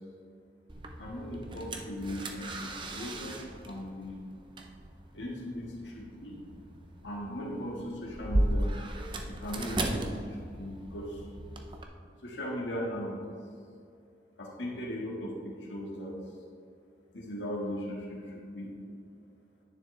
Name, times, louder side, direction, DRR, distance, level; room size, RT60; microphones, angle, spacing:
sound 1, 0.7-11.8, right 1 dB, 25° right, 0.7 m, -36 dB
voice 1, 1.0-4.2 5.1-6.4 7.0-8.7 9.3-11.3 12.2-13.3 14.4-15.3 15.6-16.2 17.1-18.7, equal, 90° left, -3 dB, 1.8 m, -38 dB
10.5 x 9.6 x 3.3 m, 2.4 s
head